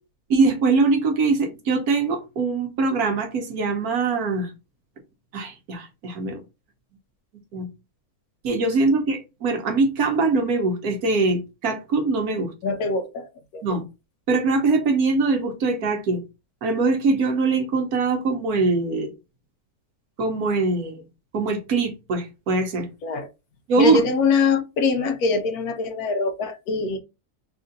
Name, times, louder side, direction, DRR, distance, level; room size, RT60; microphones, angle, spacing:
voice 1, 0.3-4.5 5.3-6.4 7.5-7.7 8.4-12.5 13.6-13.8 14.3-16.2 16.6-19.1 20.2-21.0 21.3-22.9 23.7-24.0, right 3 dB, 75° right, 1.4 m, -22 dB
voice 2, 12.6-13.6 23.0-23.3 23.8-27.0, left 4 dB, 75° left, 1.2 m, -23 dB
3.6 x 2.6 x 3.8 m
omnidirectional pair, 1.6 m